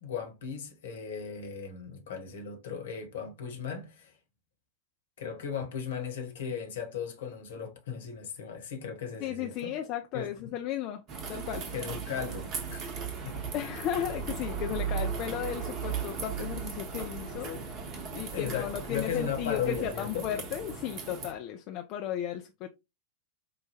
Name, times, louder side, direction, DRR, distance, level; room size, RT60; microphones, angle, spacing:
voice 1, 0.0-4.1 5.2-9.7 10.1-10.5 11.7-12.8 13.2-13.4 18.3-20.3, left 7 dB, 60° left, 1.1 m, -36 dB
voice 2, 9.2-11.0 11.3-11.7 13.5-17.6 18.1-22.7, left 11 dB, 40° left, 0.4 m, -35 dB
sound 1, 11.1-21.3, right 6 dB, 35° right, 0.9 m, -37 dB
5.2 x 2.2 x 3.0 m
figure-of-eight pair, 90°, 0 cm